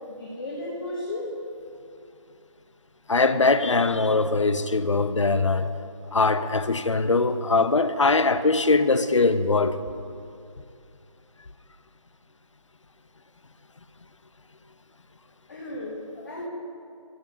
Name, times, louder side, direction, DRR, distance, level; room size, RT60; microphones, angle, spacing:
voice 1, 0.1-1.3 15.5-16.5, left 1 dB, 40° left, 1.7 m, -34 dB
voice 2, 3.1-5.7 6.1-9.8, left 3 dB, 65° left, 0.7 m, -21 dB
14.0 x 6.9 x 7.2 m
figure-of-eight pair, 160°, 17 cm